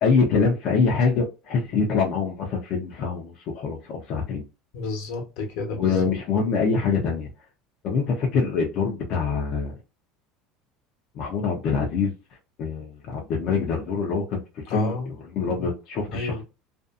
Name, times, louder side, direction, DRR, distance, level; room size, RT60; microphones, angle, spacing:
voice 1, 0.0-4.4 5.7-7.3 7.8-9.7 11.1-12.1 12.6-16.4, left 5 dB, 45° left, 0.6 m, -25 dB
voice 2, 4.7-5.9 14.7-15.1 16.1-16.4, left 3 dB, 65° left, 1.0 m, -30 dB
2.6 x 2.4 x 2.4 m
cardioid pair, 155°, 0 cm